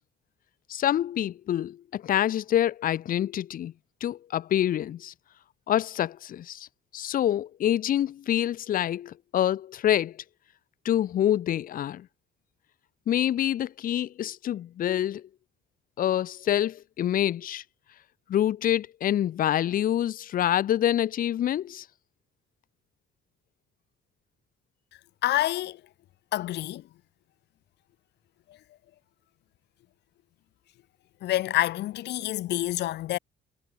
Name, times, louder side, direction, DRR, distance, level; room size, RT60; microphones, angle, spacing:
voice 1, 0.7-3.7 4.0-5.1 5.7-6.7 6.9-10.2 10.8-12.1 13.1-15.2 16.0-17.6 18.3-21.8, left 11 dB, 50° left, 1.4 m, -26 dB
voice 2, 25.2-25.8 26.3-26.9 28.5-28.6 31.2-33.2, left 14 dB, 65° left, 1.3 m, -27 dB
cardioid pair, 155°, 19 cm